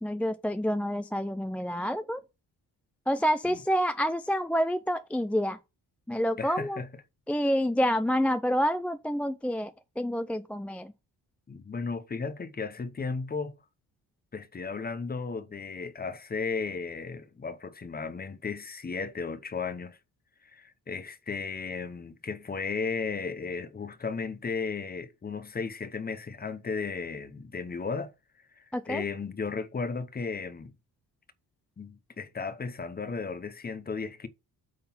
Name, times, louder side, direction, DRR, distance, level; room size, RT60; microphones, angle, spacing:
voice 1, 0.0-2.2 3.1-5.6 6.1-6.8 7.3-10.9 28.7-29.0, equal, 5° left, 0.3 m, -28 dB
voice 2, 6.4-6.9 11.5-13.5 14.3-20.0 20.4-28.1 28.6-30.7 31.8-34.3, left 4 dB, 25° left, 0.8 m, -35 dB
8.6 x 3.8 x 5.4 m
cardioid pair, 125°, 41 cm